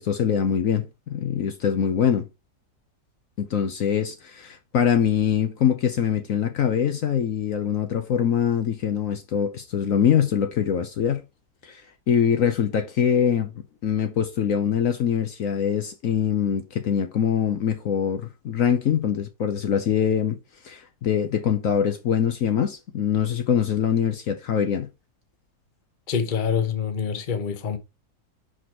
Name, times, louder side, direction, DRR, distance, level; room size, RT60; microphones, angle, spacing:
voice 1, 0.0-2.3 3.4-11.2 11.6-11.8 12.1-13.5 13.8-20.4 20.6-24.9, left 8 dB, 60° left, 1.1 m, -23 dB
voice 2, 26.1-27.8, left 6 dB, 35° left, 0.9 m, -26 dB
5.9 x 5.1 x 4.6 m
omnidirectional pair, 1.7 m